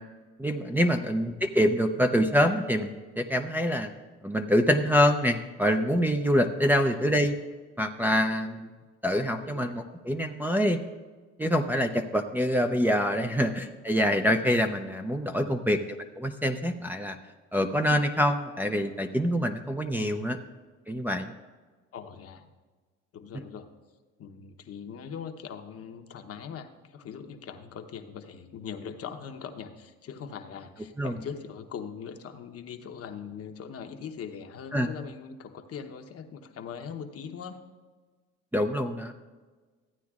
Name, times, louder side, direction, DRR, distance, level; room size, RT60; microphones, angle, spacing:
voice 1, 0.4-3.9 4.2-7.4 7.8-8.7 9.0-10.8 11.4-17.2 17.5-20.4 20.9-21.3 31.0-31.2 34.7-34.9 38.5-39.1, equal, 5° right, 3 dB, 0.5 m, -25 dB
voice 2, 9.4-9.7 15.3-15.8 20.0-20.3 21.9-22.5 23.1-23.7 24.2-37.6, left 7 dB, 50° left, 6 dB, 0.9 m, -41 dB
15.0 x 9.2 x 2.4 m, 1.4 s
supercardioid pair, 90°, 31 cm